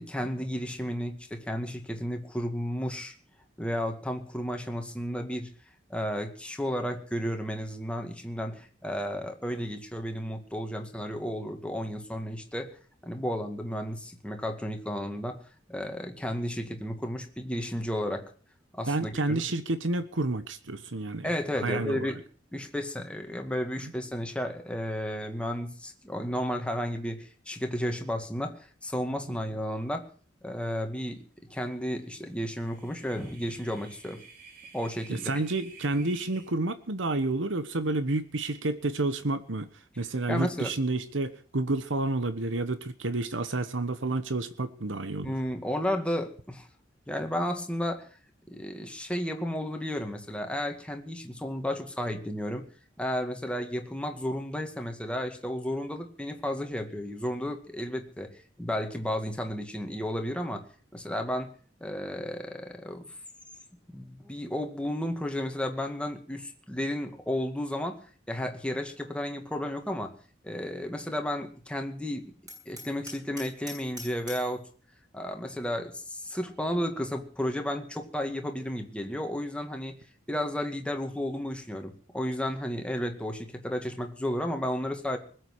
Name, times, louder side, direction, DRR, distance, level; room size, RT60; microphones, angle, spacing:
voice 1, 0.0-3.2 3.6-5.5 5.9-12.7 13.0-15.4 15.7-18.3 18.7-19.4 21.2-22.2 22.5-30.1 30.4-34.2 34.7-35.5 40.3-40.7 45.2-46.7 47.1-48.1 48.5-52.7 53.0-58.3 58.6-60.7 60.9-61.5 61.8-63.1 63.9-70.1 70.4-72.3 72.7-74.6 75.1-80.0 80.3-85.2, equal, 5° left, 4 dB, 2.1 m, -33 dB
voice 2, 18.9-21.3 21.6-22.1 35.1-39.7 40.0-45.3, right 2 dB, 85° right, 11 dB, 1.2 m, -30 dB
sound 1, 32.2-36.5, right 5 dB, 50° right, 3.9 m, -52 dB
Hammer, 72.5-74.6, equal, 20° right, 7.0 m, -44 dB
20.5 x 8.1 x 8.0 m, 0.43 s
head